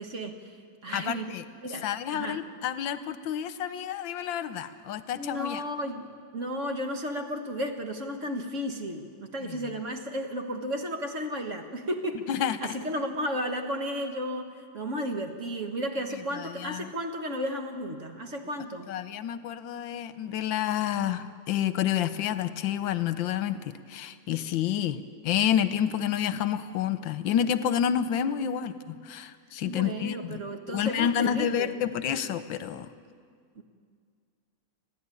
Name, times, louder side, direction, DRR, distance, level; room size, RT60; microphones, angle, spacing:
voice 1, 0.0-1.4 1.6-2.4 5.2-18.9 29.6-31.7 33.6-33.7, equal, 45° right, 5 dB, 1.6 m, -34 dB
voice 2, 0.9-1.4 1.8-5.6 12.3-12.7 16.4-16.9 18.9-30.4 30.7-32.9, left 9 dB, 80° left, 12 dB, 1.5 m, -29 dB
29.5 x 10.5 x 9.7 m, 2.1 s
omnidirectional pair, 2.1 m